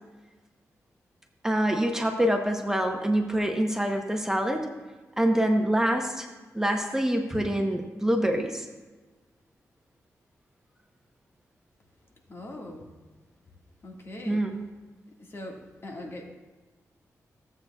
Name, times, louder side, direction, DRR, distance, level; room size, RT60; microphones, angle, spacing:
voice 1, 1.4-4.7 5.2-6.3 6.5-8.7 14.2-14.6, right 1 dB, 10° right, 3 dB, 0.9 m, -25 dB
voice 2, 12.3-12.9 13.8-14.5 15.3-15.6 15.8-16.2, left 1 dB, 45° left, 0 dB, 1.7 m, -40 dB
16.0 x 8.1 x 2.3 m, 1.3 s
cardioid pair, 85°, 6 cm